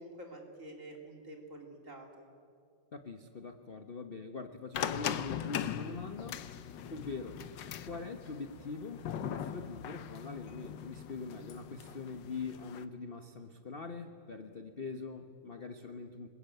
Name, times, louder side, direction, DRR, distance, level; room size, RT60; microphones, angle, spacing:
voice 1, 0.0-2.3, right 1 dB, 35° right, 2 dB, 3.5 m, -48 dB
voice 2, 2.9-6.5 6.9-7.4 7.8-16.3, left 4 dB, 40° left, 7 dB, 0.9 m, -43 dB
sound 1, 4.7-12.8, left 9 dB, 65° left, 1.5 m, -40 dB
25.5 x 21.0 x 9.1 m, 2.3 s
omnidirectional pair, 2.3 m